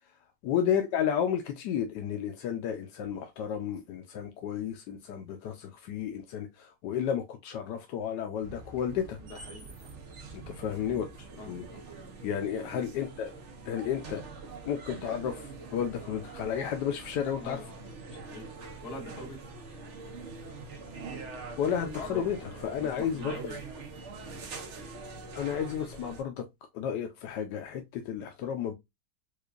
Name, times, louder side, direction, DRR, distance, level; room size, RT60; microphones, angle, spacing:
voice 1, 0.4-9.2 10.3-11.7 12.2-13.3 13.7-14.2 14.7-17.6 21.6-22.4 22.6-23.3 25.3-26.5 26.7-28.7, left 8 dB, 90° left, 1.2 m, -32 dB
sound 1, 8.4-26.2, right 3 dB, 55° right, 0.9 m, -44 dB
voice 2, 9.2-9.9 11.4-11.8 17.4-17.7 18.2-18.5 18.8-19.4 21.6-23.6, left 1 dB, 70° left, 2.0 m, -44 dB
4.7 x 2.4 x 2.4 m
omnidirectional pair, 1.8 m